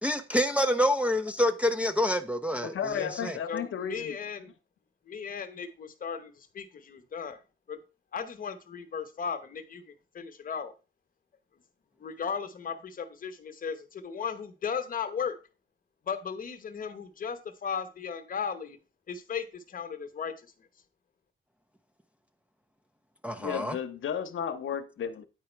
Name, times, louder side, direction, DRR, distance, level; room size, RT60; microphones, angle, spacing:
voice 1, 0.0-3.4 23.2-23.8, equal, 5° right, 0.5 m, -27 dB
voice 2, 2.6-4.2 23.4-25.2, left 8 dB, 70° left, 0.8 m, -33 dB
voice 3, 3.5-4.5 5.1-7.4 7.7-7.8 8.1-10.7 12.0-15.4 16.0-18.8 19.1-20.5, left 6 dB, 40° left, 1.0 m, -36 dB
9.0 x 4.8 x 4.4 m
wide cardioid pair, 175°, 21 cm